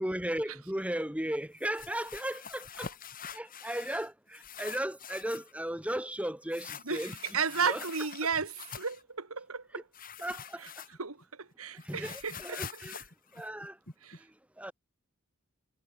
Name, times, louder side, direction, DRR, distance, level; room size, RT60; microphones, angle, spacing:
voice 1, 0.0-2.9 3.3-7.1 7.6-7.8 10.2-10.6 11.9-13.0 13.3-13.8 14.6-14.7, right 1 dB, 5° right, 2.5 m, -35 dB
sound 1, 1.6-4.1 4.3-5.5 6.5-9.0 9.9-11.2 11.5-14.2, left 6 dB, 40° left, 5.4 m, -45 dB
voice 2, 6.9-9.8 10.6-10.7 11.0-12.6 14.0-14.2, right 5 dB, 85° right, 2.4 m, -34 dB
head